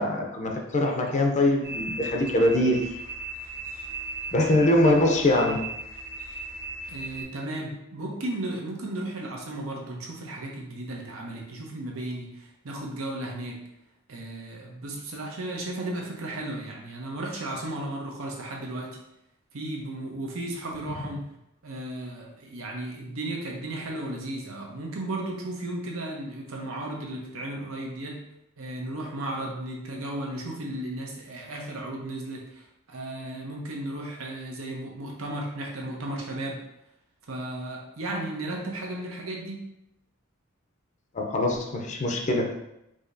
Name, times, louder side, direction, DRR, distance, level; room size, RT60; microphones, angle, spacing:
voice 1, 0.0-2.9 4.3-5.7 41.1-42.5, left 1 dB, 35° left, 1 dB, 0.5 m, -23 dB
sound 1, 1.6-7.2, right 2 dB, 45° right, 1.1 m, -37 dB
voice 2, 6.9-13.6 14.1-18.9 19.5-21.3 21.6-28.2 28.6-36.6 37.3-39.6, right 1 dB, 90° right, -1 dB, 0.8 m, -35 dB
4.9 x 2.7 x 2.6 m, 0.84 s
head